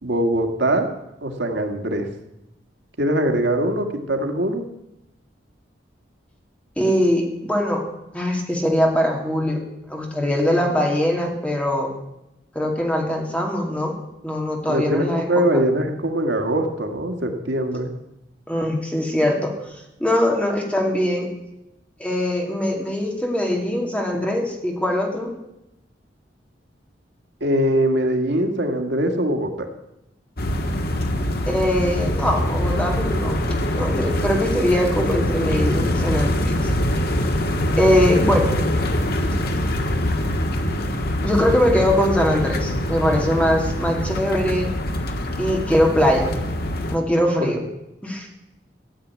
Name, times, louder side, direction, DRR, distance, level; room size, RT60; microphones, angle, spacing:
voice 1, 0.0-0.9 1.2-2.1 3.0-4.6 14.7-17.9 27.4-29.7 47.4-47.5, right 1 dB, 75° right, 4 dB, 1.8 m, -22 dB
voice 2, 6.8-7.8 8.1-9.6 9.9-11.9 12.5-13.9 14.2-15.6 18.5-19.5 20.0-21.3 22.0-25.3 31.5-33.4 33.7-36.7 37.8-38.5 41.2-44.7 45.4-46.3 46.9-47.6 48.0-48.3, left 1 dB, 5° left, 1 dB, 2.5 m, -21 dB
sound 1, 30.4-47.0, left 1 dB, 60° left, 1.5 m, -23 dB
15.0 x 7.5 x 9.4 m, 0.90 s
head